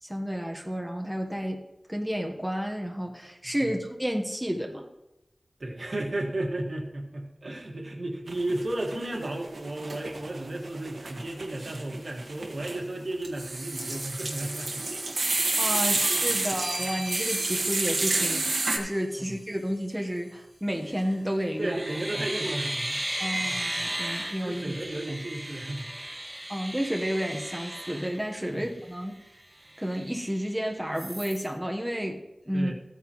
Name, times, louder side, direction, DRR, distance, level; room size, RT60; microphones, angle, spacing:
voice 1, 0.0-1.6 1.9-4.8 15.2-21.8 22.1-22.2 23.2-24.8 26.5-29.2 29.8-32.7, equal, 5° right, 1 dB, 1.1 m, -31 dB
voice 2, 5.6-14.9 15.9-16.0 19.2-19.3 21.6-23.0 23.3-23.6 24.4-25.9 26.4-26.5 28.5-28.7 32.5-32.7, right 1 dB, 60° right, 1 dB, 1.7 m, -33 dB
sound 1, 8.3-9.3 9.5-18.8, right 2 dB, 85° right, 1.6 m, -29 dB
sound 2, 16.0-19.0 20.8-21.2 21.6-28.8 29.3-29.4 29.6-30.5 31.0-31.4, right 1 dB, 20° right, 1.3 m, -36 dB
14.5 x 9.1 x 3.1 m, 0.93 s
wide cardioid pair, 80°, 0 cm